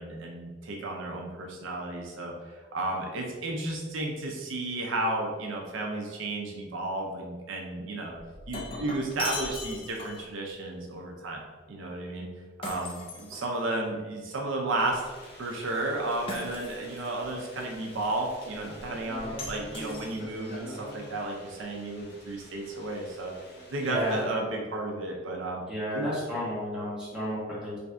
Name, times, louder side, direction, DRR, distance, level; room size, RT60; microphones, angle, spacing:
voice 1, 0.0-8.2 8.5-11.4 11.7-12.3 12.6-15.0 15.4-23.3 23.7-25.6 25.9-26.1, right 2 dB, 70° right, 0 dB, 0.5 m, -33 dB
Shatter, 8.1-10.4 12.6-13.9 16.3-17.1 19.4-20.5, left 2 dB, 30° left, 0.5 m, -39 dB
sound 1, 14.8-24.2, equal, 55° left, 0.9 m, -45 dB
voice 2, 23.8-24.2 25.7-27.8, equal, 5° right, -9 dB, 1.3 m, -32 dB
3.2 x 2.6 x 3.5 m, 1.4 s
head